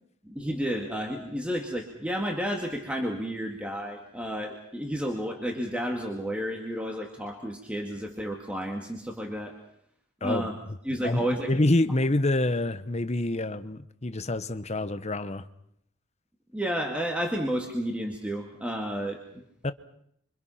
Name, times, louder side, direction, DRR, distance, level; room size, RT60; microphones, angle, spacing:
voice 1, 0.2-9.5 10.2-10.5 10.8-11.5 16.5-19.4, equal, 5° right, 2.3 m, -31 dB
voice 2, 10.2-10.5 11.0-11.2 11.5-15.5 19.6-19.7, left 1 dB, 30° left, 1.1 m, -26 dB
27.0 x 25.0 x 5.8 m
head